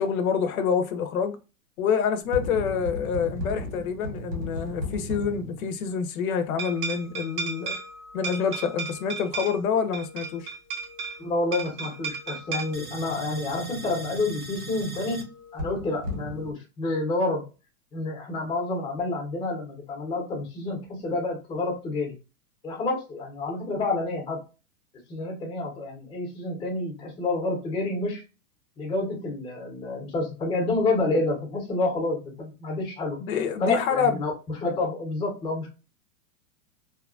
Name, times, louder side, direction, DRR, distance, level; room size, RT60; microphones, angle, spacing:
voice 1, 0.0-1.4 1.8-7.8 8.1-10.5 33.2-34.2, left 6 dB, 75° left, 0.7 m, -27 dB
sound 1, 2.2-5.9 6.6-16.5, right 2 dB, 85° right, 1.5 m, -35 dB
voice 2, 11.2-17.5 17.9-22.1 22.6-24.4 25.1-28.2 28.8-33.2 33.6-34.3 34.6-35.7, left 2 dB, 15° left, 0.8 m, -29 dB
2.8 x 2.3 x 2.4 m
supercardioid pair, 145°, 43 cm